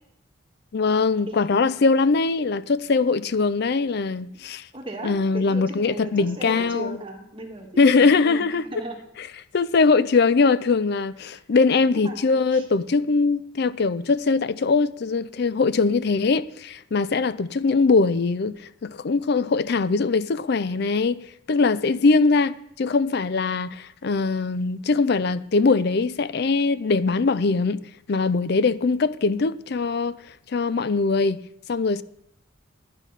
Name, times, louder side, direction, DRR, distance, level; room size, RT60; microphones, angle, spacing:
voice 1, 0.7-4.7 5.0-7.0 7.8-8.6 9.5-27.8 28.1-30.1 30.5-31.4 31.7-32.0, left 4 dB, 55° left, 0.4 m, -21 dB
voice 2, 1.2-1.6 4.3-9.0 11.2-11.4 11.9-12.7, right 1 dB, 25° right, 1.7 m, -37 dB
11.0 x 9.2 x 5.7 m
head